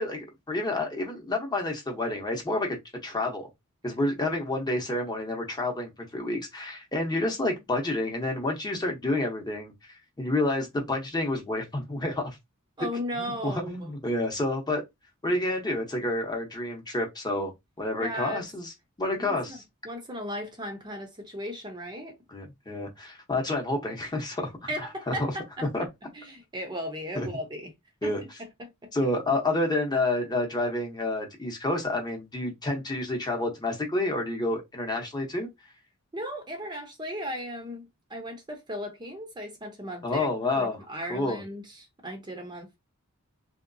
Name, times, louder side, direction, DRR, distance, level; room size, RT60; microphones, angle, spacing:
voice 1, 0.0-2.8 3.0-3.5 3.8-9.7 10.2-12.4 13.2-14.8 15.2-18.7 19.0-19.6 22.3-24.7 25.1-25.2 25.7-25.8 27.2-27.3 28.0-28.2 28.9-35.5 40.0-40.8 41.1-41.4, left 2 dB, 20° left, 0.8 m, -29 dB
voice 2, 12.8-13.9 18.0-18.5 19.1-19.6 19.8-22.2 24.7-25.9 26.1-27.7 28.0-28.9 36.1-42.8, equal, 20° right, 0.7 m, -36 dB
3.1 x 2.8 x 2.6 m
head